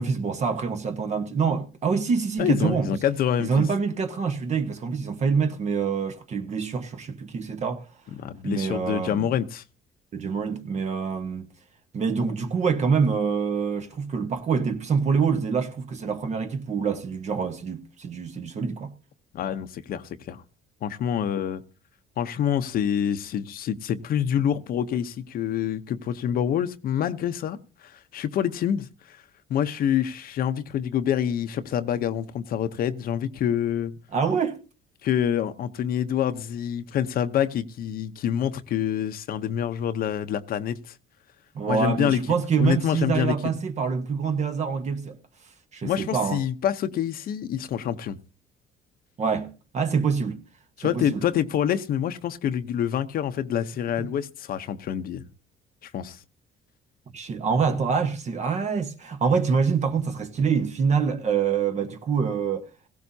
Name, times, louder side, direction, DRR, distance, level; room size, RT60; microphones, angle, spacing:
voice 1, 0.0-2.9 3.4-7.8 8.4-9.3 10.1-11.5 11.9-18.9 34.1-34.6 41.5-45.2 45.7-46.4 49.2-50.4 50.8-51.2 54.0-54.1 57.1-62.7, right 5 dB, 40° right, 1.2 m, -26 dB
voice 2, 2.4-3.6 8.2-9.6 19.3-20.4 20.8-21.6 22.2-29.2 29.5-33.9 35.0-41.0 41.7-42.2 42.6-43.4 45.8-48.2 50.8-55.2 55.8-56.2, left 9 dB, 60° left, 0.9 m, -26 dB
17.0 x 15.5 x 2.8 m
cardioid pair, 110°, 17 cm